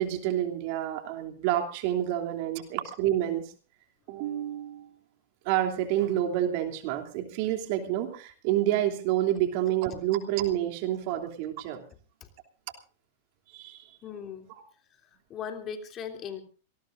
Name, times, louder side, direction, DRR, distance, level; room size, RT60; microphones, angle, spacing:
voice 1, 0.0-3.5 4.1-4.9 5.4-11.8 13.5-14.0 14.5-14.6, right 12 dB, 55° right, 5 dB, 3.0 m, -28 dB
voice 2, 14.0-14.5 15.3-16.4, left 7 dB, 35° left, 5 dB, 3.1 m, -38 dB
27.0 x 19.0 x 2.6 m, 0.38 s
hypercardioid pair, 110°, 0 cm